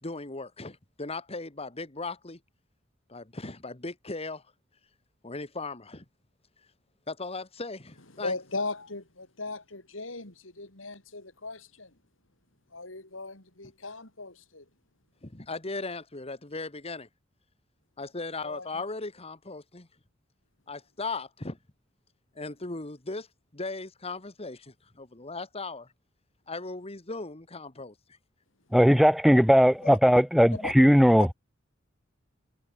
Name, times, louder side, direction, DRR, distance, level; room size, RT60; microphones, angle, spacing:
voice 1, 0.0-2.4 3.1-4.4 5.2-6.1 7.1-8.3 15.2-17.1 18.0-19.9 20.7-21.6 22.4-23.3 23.5-25.9 26.5-27.9, left 3 dB, 30° left, 2.0 m, -37 dB
voice 2, 8.1-12.0 12.7-14.6 18.4-18.8 29.8-30.0 30.5-30.7 31.2-31.3, left 3 dB, 85° left, 6.1 m, -38 dB
voice 3, 28.7-31.3, equal, ahead, 1.3 m, -19 dB
head